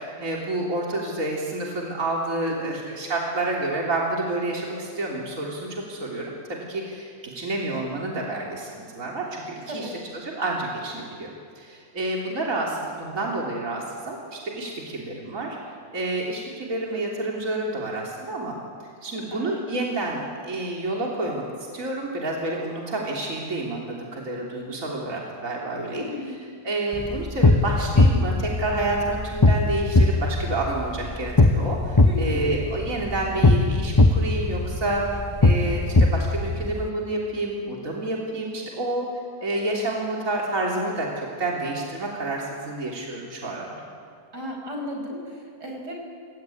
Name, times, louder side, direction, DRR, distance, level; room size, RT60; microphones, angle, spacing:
voice 1, 0.0-9.9 10.2-15.6 15.9-18.6 19.0-21.4 21.7-26.0 26.6-39.1 39.4-43.8, right 2 dB, 50° right, -3 dB, 3.8 m, -29 dB
voice 2, 2.4-2.7 9.6-10.0 19.0-19.6 25.9-26.3 32.0-32.4 44.3-46.0, left 1 dB, 85° right, 1 dB, 6.6 m, -34 dB
sound 1, 26.9-36.9, left 2 dB, 20° left, 0.6 m, -20 dB
27.5 x 21.0 x 9.4 m, 2.3 s
omnidirectional pair, 1.8 m